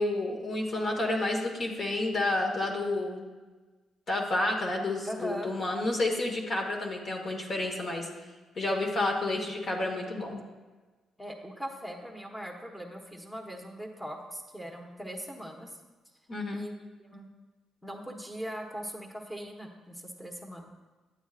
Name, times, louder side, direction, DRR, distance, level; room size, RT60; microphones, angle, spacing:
voice 1, 0.0-3.3 4.1-8.1 8.5-10.4 16.3-16.6, left 2 dB, 45° left, 0 dB, 1.3 m, -30 dB
voice 2, 5.0-5.5 11.2-15.8 16.5-16.7 17.0-17.3 17.8-20.6, equal, 5° left, 1 dB, 1.2 m, -40 dB
9.1 x 8.7 x 2.5 m, 1.3 s
cardioid pair, 90°, 0 cm